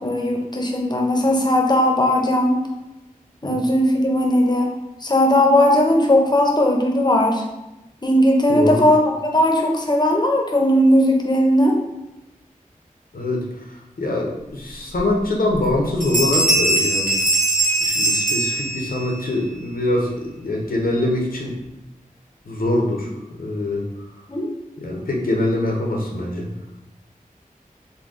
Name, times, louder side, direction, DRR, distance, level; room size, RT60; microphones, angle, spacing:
voice 1, 0.0-2.6 3.4-4.7 5.0-7.4 8.0-11.8 24.3-24.5, left 1 dB, 30° left, 1 dB, 0.7 m, -17 dB
voice 2, 8.5-8.8 13.1-13.7 14.0-17.2 17.8-21.5 22.5-23.1 23.4-23.8 24.8-26.5, left 1 dB, 80° left, -1 dB, 0.8 m, -23 dB
Bell, 14.9-15.0 15.5-15.7 16.0-19.1, right 1 dB, 65° right, 1.1 m, -20 dB
3.8 x 2.2 x 3.7 m, 0.96 s
wide cardioid pair, 50°, 15 cm